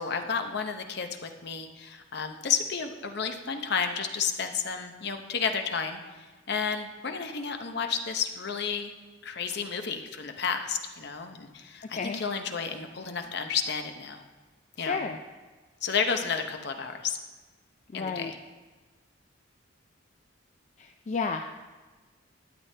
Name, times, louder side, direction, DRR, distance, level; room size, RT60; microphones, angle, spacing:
voice 1, 0.0-6.0 6.5-8.9 9.2-14.2 14.8-15.0 15.8-17.2 17.9-18.4, left 6 dB, 55° left, 6 dB, 0.7 m, -31 dB
voice 2, 14.8-15.2 17.9-18.3 20.8-21.5, left 4 dB, 35° left, 4 dB, 0.3 m, -32 dB
12.0 x 8.2 x 3.3 m, 1.3 s
head